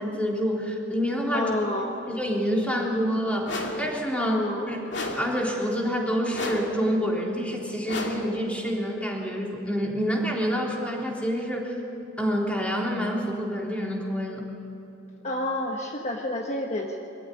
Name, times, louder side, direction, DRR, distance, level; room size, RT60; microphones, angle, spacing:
voice 1, 0.0-1.5 2.1-4.4 4.7-4.8 5.2-11.7 12.2-14.5, equal, 5° left, -2 dB, 3.5 m, -27 dB
voice 2, 1.3-2.0 4.2-4.7 15.2-17.0, left 1 dB, 35° left, 1 dB, 1.3 m, -29 dB
sound 1, 3.5-3.9 4.9-5.4 6.3-6.8 7.9-8.4, left 2 dB, 65° left, 2.7 m, -32 dB
23.5 x 14.5 x 9.9 m, 2.9 s
head